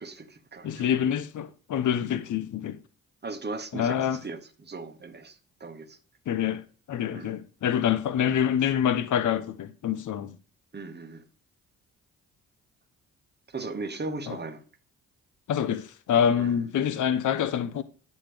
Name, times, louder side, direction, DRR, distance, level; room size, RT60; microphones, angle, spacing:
voice 1, 0.0-0.9 3.2-6.0 7.1-7.4 10.7-11.3 13.5-14.6 16.4-16.6, right 3 dB, 30° right, 1.1 m, -38 dB
voice 2, 0.6-2.8 3.7-4.2 6.3-6.6 6.9-10.3 14.3-14.4 15.5-17.8, left 9 dB, 60° left, 0.8 m, -26 dB
8.5 x 6.2 x 3.4 m
hypercardioid pair, 45°, 35 cm